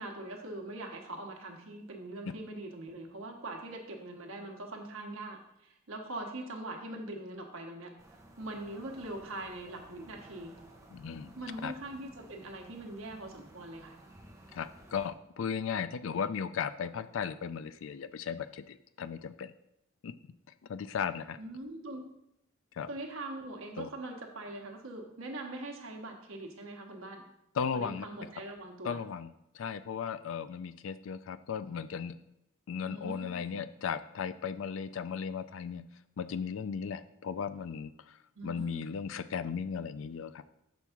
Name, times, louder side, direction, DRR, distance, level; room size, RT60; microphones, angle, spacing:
voice 1, 0.0-7.9 8.4-10.6 11.3-14.0 21.4-22.0 22.9-27.2 27.7-29.0 32.8-33.4 38.4-38.8, right 2 dB, 80° right, 2 dB, 1.0 m, -42 dB
sound 1, 8.0-15.1, right 1 dB, 15° right, 0.8 m, -55 dB
voice 2, 10.9-11.3 11.6-11.7 14.5-19.5 20.0-20.1 20.7-21.4 22.8-22.9 23.8-23.9 27.6-28.1 28.8-32.1 32.7-35.8 36.2-38.2 38.4-40.4, left 6 dB, 70° left, 13 dB, 0.4 m, -36 dB
6.2 x 3.5 x 5.7 m, 0.81 s
head